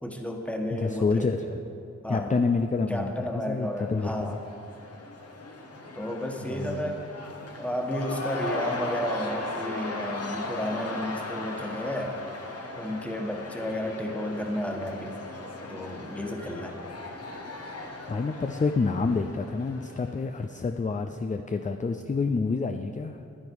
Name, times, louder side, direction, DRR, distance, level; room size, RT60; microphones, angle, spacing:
voice 1, 0.0-1.3 2.0-2.3 2.9-4.4 5.9-7.1 7.6-12.2 12.7-15.2 15.7-16.7, equal, 5° left, 1 dB, 1.5 m, -32 dB
voice 2, 0.7-1.6 2.1-4.4 6.5-7.1 18.1-23.3, left 4 dB, 25° left, 7 dB, 0.5 m, -28 dB
Cheering / Crowd, 3.6-20.5, left 2 dB, 55° left, 1.4 m, -38 dB
10.5 x 9.8 x 4.7 m, 2.7 s
cardioid pair, 45°, 29 cm